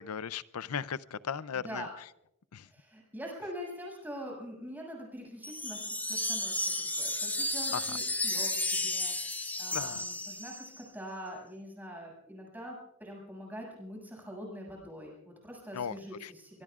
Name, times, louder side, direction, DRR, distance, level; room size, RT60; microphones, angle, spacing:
voice 1, 0.0-1.9 2.5-2.7 7.7-8.0 9.7-10.0 15.7-16.3, left 7 dB, 85° left, 17 dB, 0.6 m, -37 dB
voice 2, 1.5-1.9 2.7-16.6, equal, 10° right, -2 dB, 6.9 m, -44 dB
sound 1, 5.4-10.8, left 2 dB, 10° left, 0.6 m, -33 dB
24.5 x 23.0 x 2.5 m, 0.81 s
head